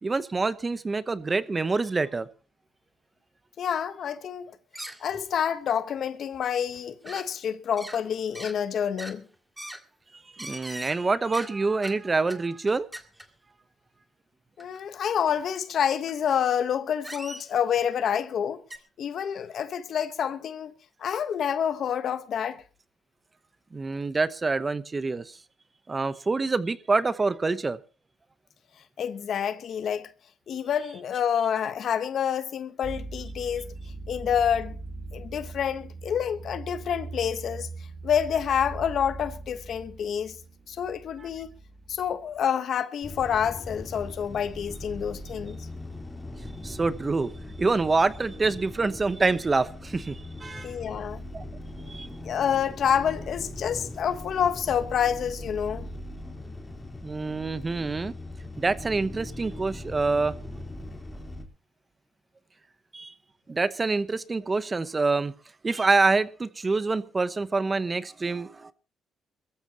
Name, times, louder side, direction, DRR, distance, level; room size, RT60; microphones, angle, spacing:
voice 1, 0.0-2.3 10.3-12.9 23.7-25.4 25.9-27.8 41.2-41.3 46.6-47.3 47.6-50.7 51.3-51.4 51.9-52.1 57.0-58.1 58.6-60.3 62.9-63.1 63.5-65.3 65.6-68.7, right 3 dB, 25° right, 1.0 m, -26 dB
voice 2, 3.6-4.5 5.0-9.2 14.6-18.6 19.0-20.7 21.0-22.6 29.0-30.1 30.5-33.7 34.1-34.8 35.1-37.7 38.0-40.4 40.7-41.5 41.9-45.6 50.6-51.2 52.2-55.9, left 8 dB, 65° left, 1.2 m, -28 dB
sound 1, 4.7-5.5 5.7-5.8 6.3-6.4 6.7-7.3 7.7-8.0 8.4-8.6 9.0-9.2 9.6-9.8 10.4-11.0 11.3-11.5 11.8-12.0 12.3-12.4 12.7-13.3 14.6-14.8 15.1-15.2 16.1-16.2 17.0-17.8 18.7-18.8, right 1 dB, 10° right, 2.0 m, -41 dB
sound 2, 32.8-42.4, right 3 dB, 55° right, 3.6 m, -41 dB
sound 3, 43.0-61.4, left 1 dB, 15° left, 4.0 m, -40 dB
22.5 x 14.5 x 3.0 m
cardioid pair, 90°, 0 cm